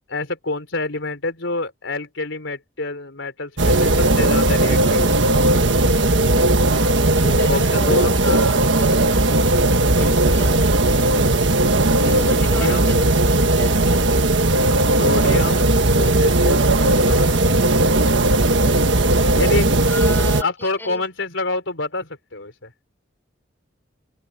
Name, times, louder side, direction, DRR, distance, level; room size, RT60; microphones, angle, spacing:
voice 1, 0.1-5.2 7.2-8.4 11.8-13.0 15.0-15.7 16.0-17.7 19.3-19.8 20.4-22.7, left 2 dB, 75° left, 3.7 m, -27 dB
sound 1, 3.6-20.4, right 2 dB, 65° right, 1.5 m, -17 dB
voice 2, 7.3-8.9 9.9-11.0 12.0-14.1 14.8-15.3 19.9-21.1, left 1 dB, 10° left, 5.5 m, -35 dB
open air
head